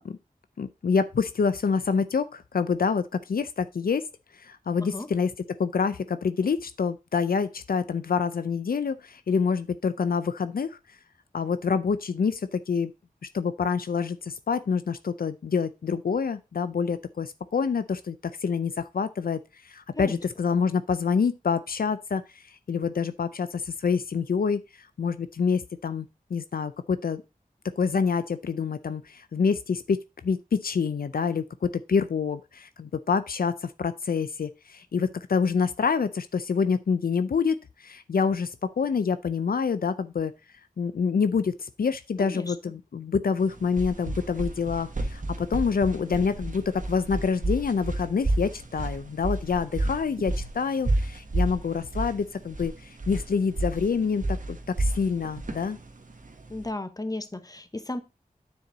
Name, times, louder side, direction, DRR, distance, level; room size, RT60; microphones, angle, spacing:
voice 1, 0.6-4.0 4.3-5.3 5.6-10.8 11.3-12.9 13.3-26.1 26.3-27.2 27.8-40.3 40.8-55.8, left 5 dB, 85° left, 0.5 m, -27 dB
voice 2, 42.2-42.5 56.5-58.0, left 2 dB, 25° left, 1.0 m, -34 dB
sound 1, 43.4-56.7, right 2 dB, 60° right, 1.4 m, -30 dB
9.5 x 4.5 x 3.9 m
wide cardioid pair, 65°, 15 cm